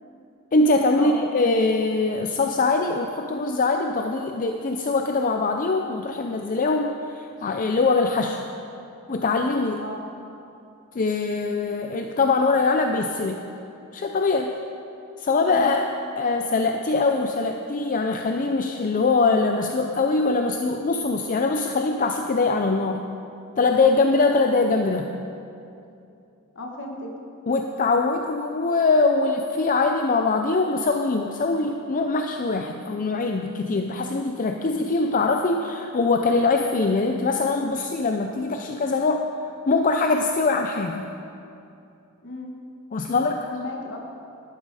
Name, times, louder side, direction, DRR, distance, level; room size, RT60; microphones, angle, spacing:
voice 1, 0.5-8.4 9.1-9.8 10.9-13.4 13.9-14.6 15.2-15.9 16.1-23.0 23.6-25.1 27.5-39.3 39.7-41.1 42.9-43.5, left 3 dB, 40° left, 4 dB, 0.5 m, -22 dB
voice 2, 26.5-27.1 42.2-42.5 43.5-44.0, left 1 dB, 55° left, 1 dB, 1.6 m, -35 dB
11.5 x 11.5 x 4.9 m, 2.7 s
head